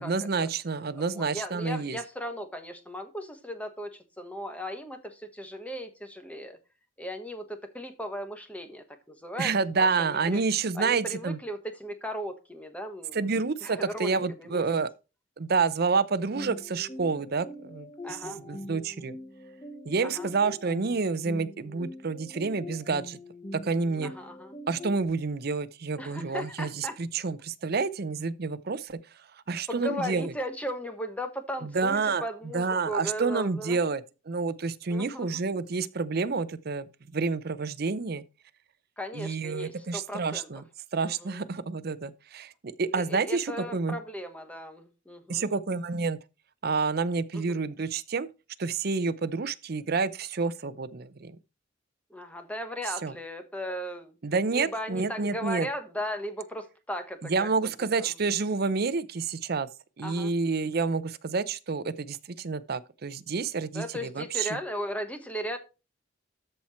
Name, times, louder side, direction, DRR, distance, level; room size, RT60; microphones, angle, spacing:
voice 1, 0.0-2.0 9.4-11.4 13.1-14.9 15.4-19.2 19.8-23.2 23.5-24.1 24.7-29.0 29.5-30.3 31.6-32.2 32.5-38.2 39.1-40.6 40.9-42.5 42.8-44.0 45.3-46.2 46.6-48.3 48.6-51.4 53.0-53.1 54.2-55.7 57.2-59.7 60.0-64.6, right 4 dB, 55° right, 0.6 m, -29 dB
voice 2, 1.0-6.6 7.0-9.5 9.8-10.4 10.7-13.3 13.6-14.6 18.0-18.4 20.0-20.3 24.0-24.5 26.0-27.0 29.7-33.8 34.9-35.4 39.0-40.5 41.0-41.4 42.9-45.5 47.3-47.6 52.1-54.2 54.5-57.6 58.0-58.1 60.0-60.3 63.7-65.6, equal, 5° left, 1.3 m, -37 dB
sound 1, 16.3-25.1, left 1 dB, 25° left, 1.0 m, -43 dB
13.0 x 4.4 x 4.3 m
head